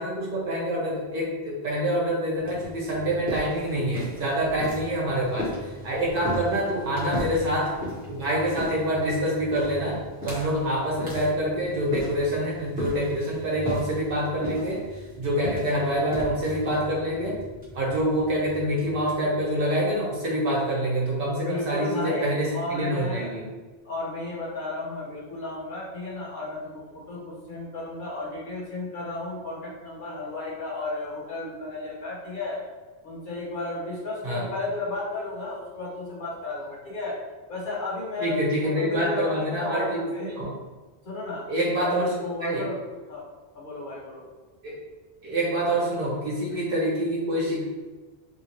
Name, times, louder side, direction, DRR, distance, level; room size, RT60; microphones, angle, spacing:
voice 1, 0.0-7.8 8.1-17.4 17.7-23.5 34.2-34.5 38.2-40.5 41.5-42.1 42.4-42.7 44.6-44.8 45.2-47.6, right 1 dB, 55° right, -5 dB, 1.0 m, -26 dB
sound 1, 2.4-19.9, left 1 dB, 10° right, 1.0 m, -37 dB
voice 2, 6.4-7.2 21.4-23.4 23.8-32.6 33.0-37.2 37.5-40.3 41.0-41.5 41.8-43.3 43.5-44.2, left 2 dB, 55° left, -5 dB, 0.8 m, -34 dB
2.8 x 2.6 x 2.9 m, 1.3 s
omnidirectional pair, 1.1 m